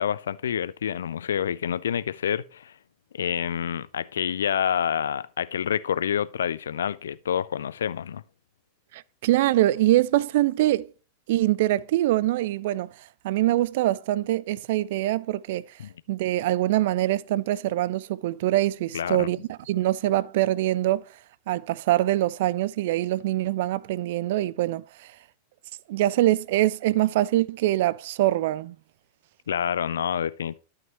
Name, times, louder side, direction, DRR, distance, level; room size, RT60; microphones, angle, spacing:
voice 1, 0.0-2.7 3.1-8.2 15.8-15.9 18.9-19.3 29.5-30.6, left 8 dB, 65° left, 0.4 m, -28 dB
voice 2, 8.9-10.9 11.3-12.9 13.2-15.6 16.1-21.0 21.5-24.8 25.9-28.7, right 15 dB, 55° right, 0.3 m, -24 dB
12.0 x 5.8 x 3.0 m
figure-of-eight pair, 90°, 0 cm